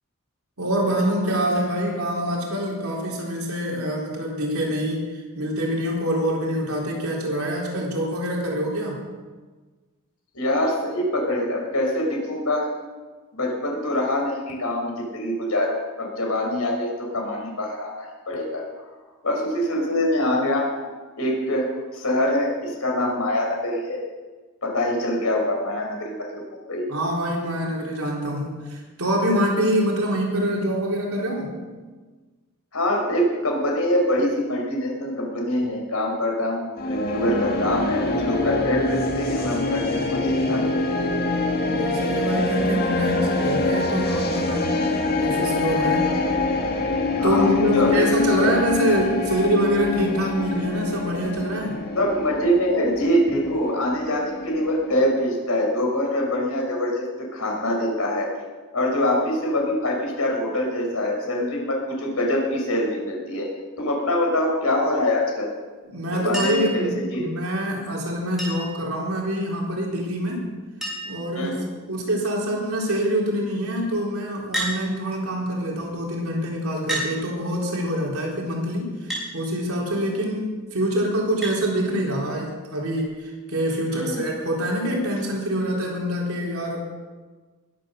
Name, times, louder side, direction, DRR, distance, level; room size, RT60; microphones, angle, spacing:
voice 1, 0.6-9.0 26.9-31.5 41.7-46.1 47.2-51.8 65.8-70.5 71.0-86.8, equal, 75° right, -2 dB, 3.9 m, -25 dB
voice 2, 10.3-12.7 13.3-18.6 19.2-20.9 21.2-21.7 21.9-24.0 24.6-26.4 26.7-26.8 32.7-40.7 47.2-48.0 48.4-48.5 52.0-57.0 57.3-58.3 58.7-63.5 63.8-65.5 66.1-67.4 71.3-71.7 83.9-84.3, left 1 dB, 80° left, 0 dB, 4.5 m, -24 dB
sound 1, 36.8-55.0, left 3 dB, 45° left, 1.7 m, -25 dB
Chink clink, 66.3-66.8 68.4-68.8 70.2-70.3 70.5-70.6 70.8-71.3 72.0-72.4 74.5-74.8 75.8-75.9 76.9-77.1 79.1-79.3 81.4-81.6 83.0-83.1, right 1 dB, ahead, 5.8 m, -29 dB
21.0 x 8.3 x 6.6 m, 1.4 s
head